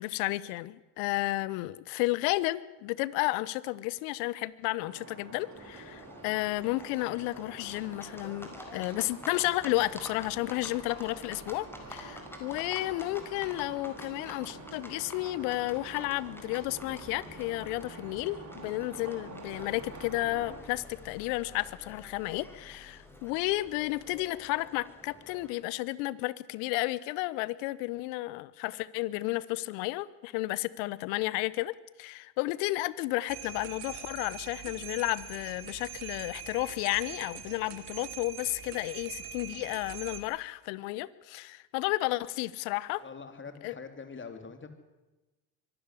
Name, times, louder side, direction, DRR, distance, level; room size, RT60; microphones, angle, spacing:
voice 1, 0.0-43.0 43.6-43.7, left 19 dB, 70° left, 20 dB, 1.1 m, -32 dB
sound 1, 4.8-20.6, right 3 dB, 35° right, 6.3 m, -48 dB
Livestock farm animals working animals, 5.5-25.5, left 1 dB, 5° left, 4.6 m, -49 dB
sound 2, 33.3-40.2, right 9 dB, 70° right, 3.5 m, -43 dB
voice 2, 43.0-44.7, left 5 dB, 25° left, 7 dB, 3.5 m, -44 dB
23.5 x 12.5 x 9.8 m, 1.1 s
hypercardioid pair, 80°, 46 cm